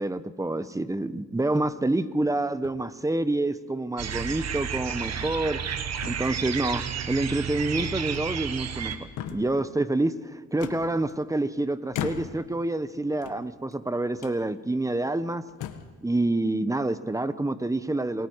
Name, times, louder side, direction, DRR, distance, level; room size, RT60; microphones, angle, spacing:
voice 1, 0.0-5.6 6.1-15.4 16.0-18.3, right 2 dB, 10° right, 13 dB, 1.1 m, -27 dB
sound 1, 1.4-1.8 2.6-3.4 4.1-4.4 4.8-4.9 5.4-5.8 6.0-6.7 7.8-8.5 8.8-9.6 10.6-11.4 11.9-12.6 13.1-13.8 14.2-14.4 15.0-15.1 15.5-16.0, left 9 dB, 85° left, 1.5 m, -39 dB
sound 2, 4.0-9.0, right 7 dB, 60° right, 1.7 m, -31 dB
28.5 x 21.0 x 4.8 m, 1.4 s
cardioid pair, 90°, 30 cm